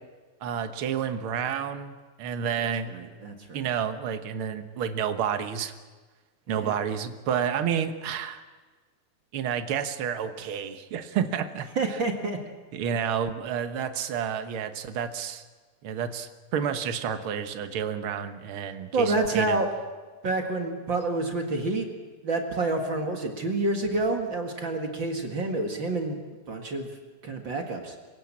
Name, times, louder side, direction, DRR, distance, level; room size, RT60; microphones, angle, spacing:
voice 1, 0.4-2.9 3.5-5.7 6.5-8.4 9.3-12.0 12.7-15.4 15.8-19.6, right 8 dB, 60° right, 8 dB, 1.5 m, -30 dB
voice 2, 2.9-3.7 6.5-6.8 11.8-12.4 18.9-19.7 20.2-21.9 22.2-26.2 26.5-26.9 27.2-27.9, right 2 dB, 40° right, 3 dB, 2.1 m, -28 dB
27.0 x 16.5 x 8.7 m, 1.4 s
omnidirectional pair, 4.0 m